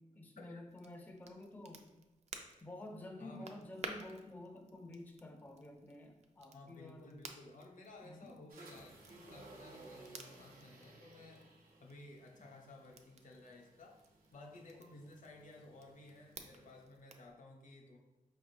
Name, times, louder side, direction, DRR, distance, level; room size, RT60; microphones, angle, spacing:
voice 1, 0.0-1.8 2.6-7.2 8.0-8.3 14.7-14.8, left 1 dB, 10° left, 3 dB, 0.4 m, -51 dB
Crackle, 0.7-17.3, right 4 dB, 50° right, 0.4 m, -55 dB
voice 2, 6.5-11.5 11.8-14.0 14.3-18.0, left 2 dB, 65° left, 1 dB, 0.7 m, -55 dB
sound 1, 8.5-16.8, right 2 dB, 90° right, 0.8 m, -59 dB
5.1 x 3.5 x 2.6 m, 1.1 s
wide cardioid pair, 155°, 14 cm